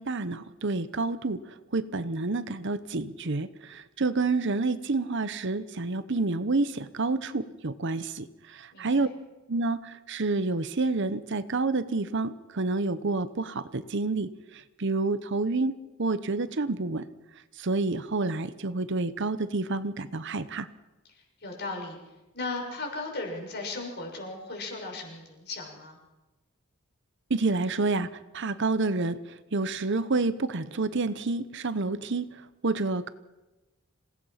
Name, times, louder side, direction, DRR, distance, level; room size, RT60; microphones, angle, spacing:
voice 1, 0.0-1.4 1.7-8.3 8.8-9.1 9.5-14.3 14.8-15.7 16.0-17.0 17.6-20.7 27.3-28.1 28.3-29.2 29.5-32.3 32.6-33.1, right 3 dB, 55° right, 13 dB, 0.9 m, -28 dB
voice 2, 8.7-9.1 21.1-22.0 22.3-26.0, left 3 dB, 50° left, 1 dB, 6.5 m, -36 dB
27.5 x 18.0 x 5.8 m, 1.1 s
head